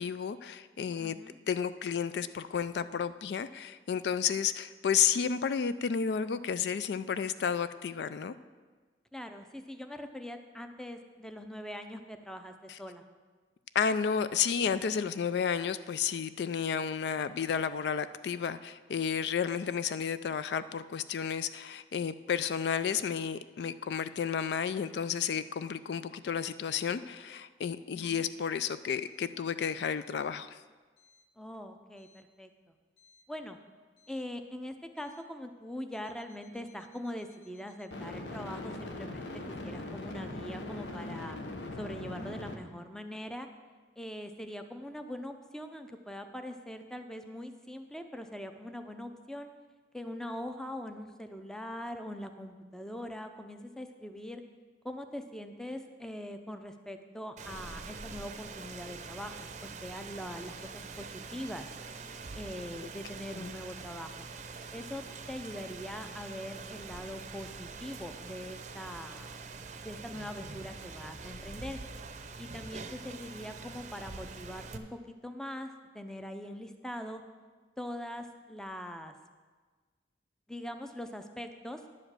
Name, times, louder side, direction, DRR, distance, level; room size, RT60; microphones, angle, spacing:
voice 1, 0.0-1.2 1.5-8.3 12.7-12.8 13.7-30.6 63.3-63.5, left 7 dB, 65° left, 13 dB, 0.3 m, -32 dB
voice 2, 1.0-1.4 9.1-13.0 27.9-28.2 31.4-32.5 33.3-33.6 34.1-41.4 41.8-43.5 44.0-49.5 49.9-54.4 54.8-61.7 62.3-64.3 64.7-69.4 69.8-71.8 72.4-77.2 77.8-79.1 80.5-81.8, left 1 dB, 5° left, 7 dB, 0.5 m, -42 dB
sound 1, 33.0-33.2 37.9-42.5, left 2 dB, 85° left, 1.0 m, -40 dB
Rain, 57.4-74.8, right 4 dB, 40° right, 0.6 m, -44 dB
10.5 x 5.1 x 7.5 m, 1.4 s
head